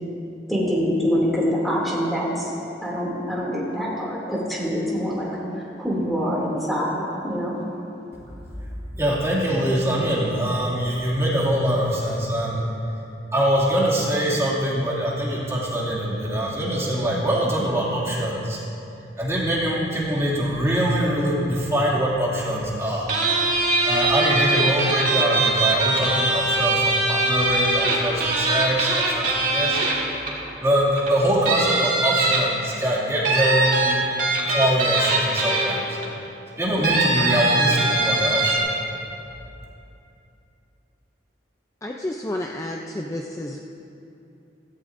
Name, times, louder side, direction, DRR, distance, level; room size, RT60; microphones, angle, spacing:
voice 1, 0.5-2.5 2.8-5.3 5.8-7.6, equal, ahead, -5 dB, 2.6 m, -25 dB
voice 2, 8.9-12.7 13.3-18.6 19.2-23.1 23.8-29.8 30.6-34.0 34.5-36.0 36.6-38.7, right 1 dB, 15° right, -6 dB, 2.4 m, -23 dB
sound 1, 23.1-30.5 31.0-31.1 31.5-32.7 33.2-36.0 36.8-38.6, right 2 dB, 50° right, 2.2 m, -21 dB
voice 3, 41.8-43.6, left 1 dB, 20° left, 1 dB, 0.5 m, -30 dB
15.5 x 15.0 x 2.6 m, 2.8 s
head